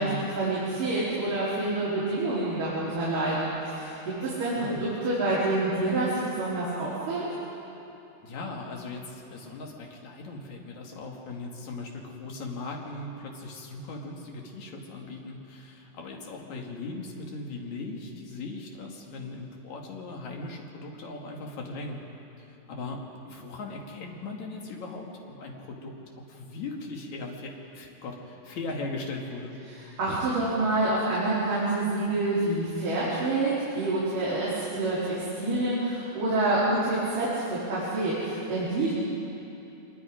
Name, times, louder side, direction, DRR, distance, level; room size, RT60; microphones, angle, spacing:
voice 1, 0.4-3.9 4.2-7.2 29.7-38.9, right 2 dB, 45° right, -10 dB, 5.6 m, -27 dB
voice 2, 8.2-22.0 22.4-29.5, left 2 dB, 50° left, 0 dB, 2.6 m, -38 dB
25.5 x 22.0 x 5.1 m, 3.0 s
omnidirectional pair, 5.5 m